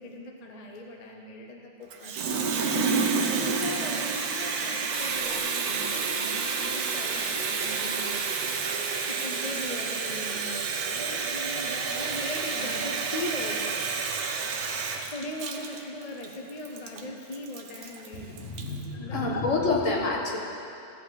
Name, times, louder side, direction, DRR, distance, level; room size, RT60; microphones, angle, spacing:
voice 1, 0.0-2.1 2.5-8.2 9.1-13.8 15.1-18.3 18.9-19.4, left 1 dB, 35° left, 1 dB, 0.8 m, -39 dB
Water tap faucet, 1.9-18.8, right 5 dB, 80° right, 1.3 m, -30 dB
sound 1, 4.9-10.3, right 5 dB, 55° right, 1.0 m, -35 dB
voice 2, 18.1-20.4, left 3 dB, 55° left, -1 dB, 1.7 m, -28 dB
16.0 x 7.9 x 4.0 m, 2.6 s
omnidirectional pair, 1.6 m